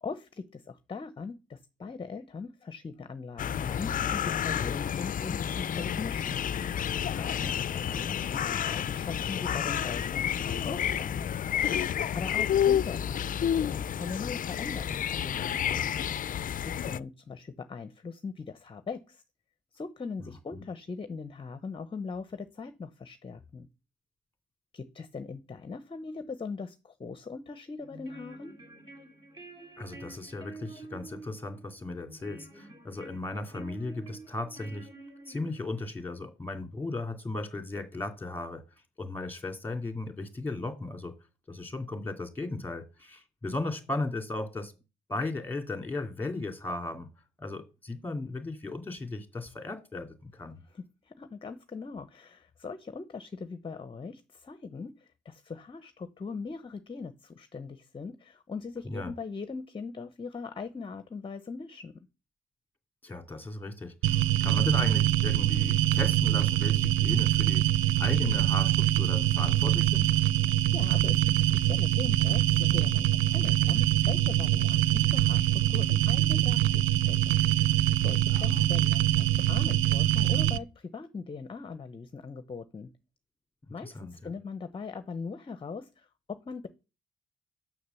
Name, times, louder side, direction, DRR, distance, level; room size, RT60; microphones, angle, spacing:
voice 1, 0.0-6.4 7.2-11.3 12.1-16.0 16.6-19.2 19.7-23.7 24.7-28.5 50.7-62.1 70.5-77.4 78.0-82.9 83.7-86.7, left 4 dB, 25° left, 12 dB, 0.8 m, -40 dB
sound 1, 3.4-17.0, left 9 dB, 45° left, 0.5 m, -30 dB
voice 2, 7.1-8.2 12.0-12.3 20.2-20.6 29.8-34.9 35.3-38.6 39.0-41.1 41.5-44.7 45.1-47.1 47.4-50.6 58.9-59.1 63.0-67.6 68.0-70.1 78.3-78.6 83.8-84.3, left 2 dB, 10° left, 6 dB, 2.4 m, -36 dB
sound 2, 27.8-35.8, right 3 dB, 25° right, 2.7 m, -49 dB
sound 3, 64.0-80.6, right 14 dB, 85° right, 0.4 m, -24 dB
6.6 x 6.4 x 6.9 m, 0.30 s
cardioid pair, 90°, 20 cm